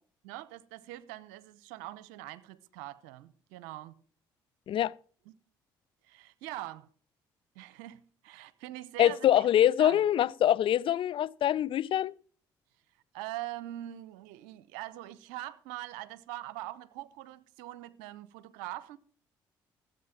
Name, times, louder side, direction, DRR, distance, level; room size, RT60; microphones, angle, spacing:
voice 1, 0.2-4.0 5.3-5.4 6.1-6.9 7.5-9.5 9.8-10.1 13.1-19.0, right 15 dB, 85° right, 0.7 m, -43 dB
voice 2, 9.0-12.1, left 11 dB, 60° left, 0.5 m, -24 dB
14.5 x 8.2 x 5.8 m
hypercardioid pair, 55°, 10 cm